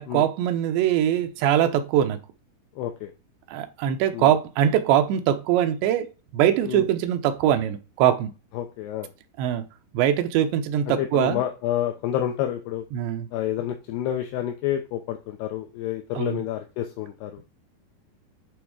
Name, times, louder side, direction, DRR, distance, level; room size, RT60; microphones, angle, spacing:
voice 1, 0.0-2.2 3.5-8.3 9.4-9.6 9.9-11.4 12.9-13.3 16.2-16.4, right 10 dB, 85° right, 3.1 m, -22 dB
voice 2, 2.8-3.1 4.1-4.4 6.7-6.9 8.5-9.1 11.0-12.9 13.3-17.4, left 11 dB, 75° left, 2.6 m, -29 dB
10.5 x 3.5 x 4.8 m
omnidirectional pair, 5.0 m